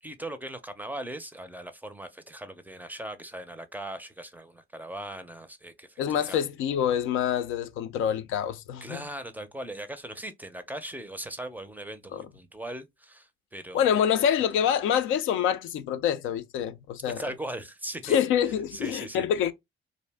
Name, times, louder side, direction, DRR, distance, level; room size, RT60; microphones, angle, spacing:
voice 1, 0.0-6.4 8.8-14.0 17.1-18.2 18.7-19.3, right 1 dB, 10° right, 0.4 m, -39 dB
voice 2, 6.0-9.0 12.1-12.2 13.7-17.2 18.0-19.5, left 9 dB, 85° left, 0.4 m, -26 dB
2.5 x 2.0 x 3.3 m
cardioid pair, 90°, 20 cm